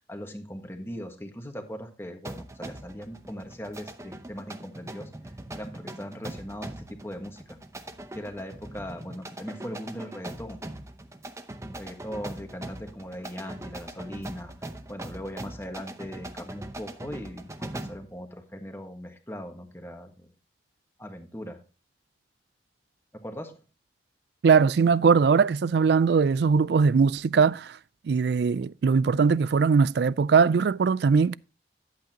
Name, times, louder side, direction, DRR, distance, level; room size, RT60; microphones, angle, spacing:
voice 1, 0.0-5.1 5.5-7.6 8.1-10.6 11.7-14.5 14.9-20.3 21.0-21.6 23.1-23.6, equal, 15° left, 1.5 m, -39 dB
sound 1, 2.2-18.1, right 1 dB, 15° right, 0.7 m, -41 dB
voice 2, 24.4-27.8 28.0-31.4, right 5 dB, 60° right, 0.3 m, -21 dB
11.5 x 8.2 x 2.8 m
head